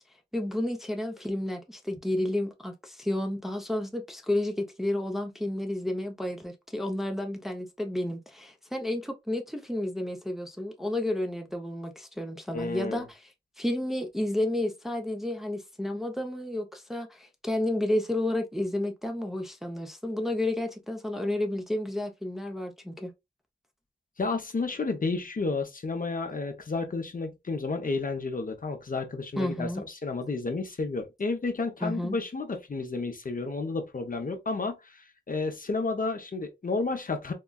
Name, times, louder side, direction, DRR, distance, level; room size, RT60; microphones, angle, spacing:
voice 1, 0.3-13.2 13.6-23.1 29.4-29.8 31.8-32.2, left 1 dB, ahead, 0.6 m, -31 dB
voice 2, 12.5-13.0 24.2-37.3, left 3 dB, 45° left, 0.6 m, -31 dB
3.7 x 2.1 x 2.2 m
wide cardioid pair, 65°, 19 cm